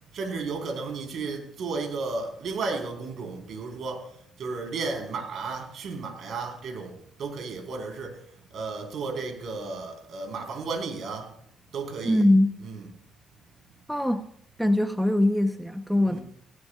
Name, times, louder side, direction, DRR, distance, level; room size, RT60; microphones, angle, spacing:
voice 1, 0.1-11.3 11.7-12.3 12.6-12.9 16.0-16.2, right 4 dB, 65° right, 2 dB, 4.5 m, -34 dB
voice 2, 12.0-12.5 13.9-14.2 14.6-16.2, left 1 dB, ahead, 7 dB, 1.0 m, -22 dB
18.0 x 17.0 x 2.5 m, 0.68 s
cardioid pair, 90°, 0 cm